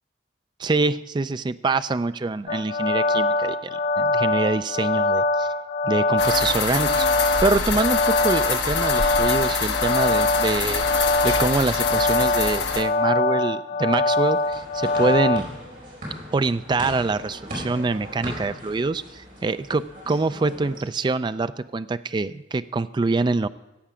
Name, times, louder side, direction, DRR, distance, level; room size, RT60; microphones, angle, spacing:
voice 1, 0.6-3.6 4.0-5.5 5.8-10.8 11.2-15.5 16.3-23.5, right 3 dB, 25° right, 13 dB, 0.3 m, -25 dB
sound 1, 2.5-15.4, left 2 dB, 90° left, 0.7 m, -23 dB
sound 2, 6.2-12.8, left 5 dB, 70° left, 1.1 m, -26 dB
sound 3, 14.1-20.8, equal, 50° right, 4.9 m, -38 dB
14.5 x 8.5 x 4.9 m, 1.0 s
head